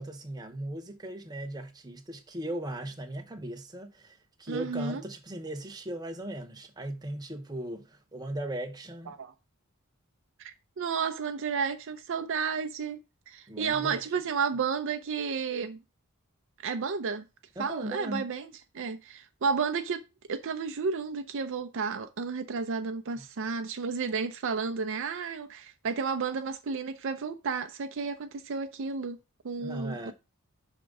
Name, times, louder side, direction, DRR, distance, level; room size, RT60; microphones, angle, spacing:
voice 1, 0.0-9.1 13.5-14.0 17.6-18.3 23.2-23.3 29.6-30.1, right 1 dB, 20° right, 0.9 m, -38 dB
voice 2, 4.5-5.0 9.1-9.3 10.4-13.0 13.3-15.8 16.6-17.2 17.6-18.5 18.7-20.0 20.3-29.2 29.4-30.1, right 5 dB, 60° right, 0.5 m, -32 dB
5.8 x 3.6 x 5.2 m
head